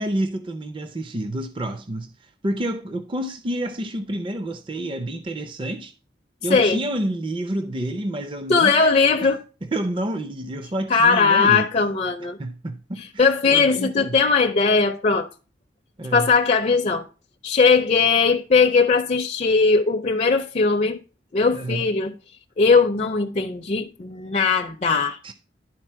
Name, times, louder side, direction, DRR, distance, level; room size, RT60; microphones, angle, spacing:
voice 1, 0.0-5.9 6.4-8.9 9.2-9.3 9.6-11.7 12.4-14.2 16.0-16.3 21.5-21.9 25.2-25.3, right 1 dB, 30° right, 0.5 m, -29 dB
voice 2, 6.5-6.8 8.5-9.4 10.9-12.4 13.2-15.3 16.1-17.1 17.4-21.0 21.3-22.1 22.6-25.2, left 4 dB, 40° left, 0.4 m, -19 dB
11.0 x 4.0 x 4.5 m
head